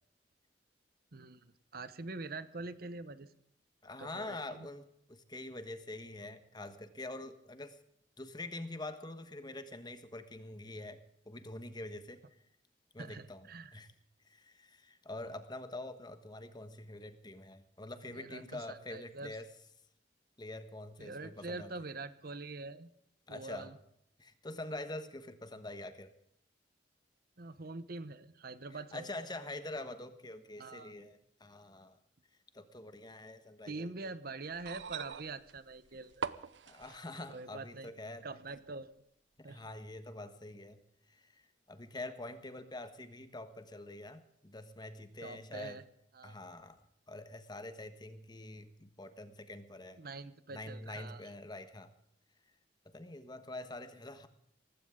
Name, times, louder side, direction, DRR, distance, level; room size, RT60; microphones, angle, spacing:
voice 1, 1.1-3.3 4.0-4.7 13.0-13.8 18.1-19.4 21.0-22.9 23.3-23.8 27.4-29.1 30.6-30.9 33.7-36.2 37.3-37.9 38.2-38.9 39.4-39.7 45.2-45.8 46.1-46.4 50.0-51.3, right 3 dB, 55° right, 14 dB, 1.0 m, -45 dB
voice 2, 3.8-7.8 8.2-11.0 11.2-12.2 12.9-13.5 13.7-13.9 14.2-19.4 20.4-21.7 23.3-23.7 24.2-26.1 28.9-32.0 32.5-34.1 36.7-38.2 39.5-40.8 41.1-41.4 41.7-45.8 46.2-46.8 47.1-50.0 50.5-51.9 52.9-54.3, left 2 dB, 25° left, 10 dB, 1.4 m, -45 dB
sound 1, 34.5-37.5 38.6-38.7, right 6 dB, 90° right, 0.7 m, -43 dB
18.5 x 16.0 x 3.8 m, 0.73 s
head